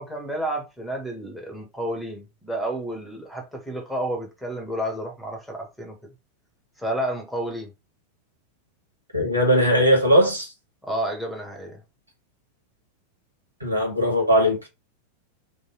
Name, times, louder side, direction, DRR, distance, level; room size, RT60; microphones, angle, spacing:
voice 1, 0.0-5.9 6.8-7.7 10.8-11.8, right 1 dB, ahead, 1.7 m, -30 dB
voice 2, 9.1-10.5 13.6-14.7, equal, 80° right, 1.7 m, -19 dB
4.0 x 3.4 x 3.9 m
figure-of-eight pair, 90°, 0 cm